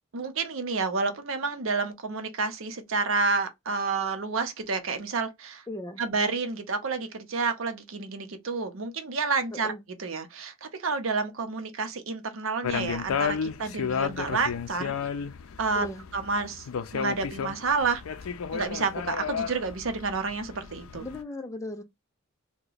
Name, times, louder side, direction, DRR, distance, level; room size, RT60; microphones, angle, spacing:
voice 1, 0.1-5.6 6.0-9.7 10.0-14.9 15.6-15.9 16.1-16.7 16.9-18.0 18.5-21.1, right 4 dB, 70° right, 0.7 m, -29 dB
voice 2, 5.7-6.0 9.5-9.8 15.7-16.0 21.0-21.8, left 1 dB, 15° left, 0.4 m, -36 dB
sound 1, 12.6-21.2, left 6 dB, 90° left, 0.4 m, -33 dB
2.8 x 2.2 x 3.8 m
head